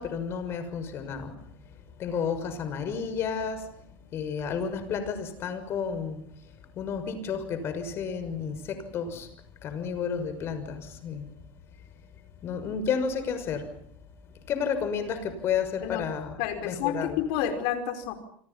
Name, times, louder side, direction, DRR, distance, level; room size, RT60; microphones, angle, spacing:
voice 1, 0.0-9.3 9.6-11.3 12.4-13.8 14.2-16.3 16.6-17.2, left 6 dB, 45° left, 6.5 m, -32 dB
voice 2, 16.4-18.1, left 9 dB, 65° left, 5.1 m, -29 dB
29.0 x 25.5 x 5.8 m
hypercardioid pair, 90°, 6 cm